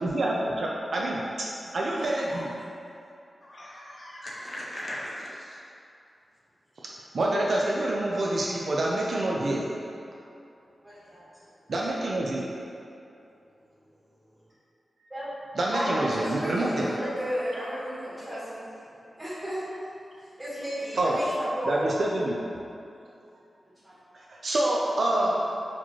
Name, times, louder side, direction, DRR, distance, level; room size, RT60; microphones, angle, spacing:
voice 1, 0.0-1.3 1.7-2.4 7.1-9.7 11.7-12.5 15.5-16.9 20.9-21.2 21.6-22.4 24.3-25.4, right 1 dB, 55° right, -3 dB, 0.3 m, -27 dB
voice 2, 2.0-2.5 3.4-5.6 8.4-8.5, left 1 dB, 35° left, -5 dB, 0.5 m, -39 dB
voice 3, 10.8-11.2 15.1-15.3 15.7-18.7 19.2-19.6 20.4-21.3 21.6-21.8 23.8-24.0, equal, 15° right, -11 dB, 1.4 m, -33 dB
4.2 x 2.8 x 3.0 m, 2.7 s
wide cardioid pair, 140°, 0 cm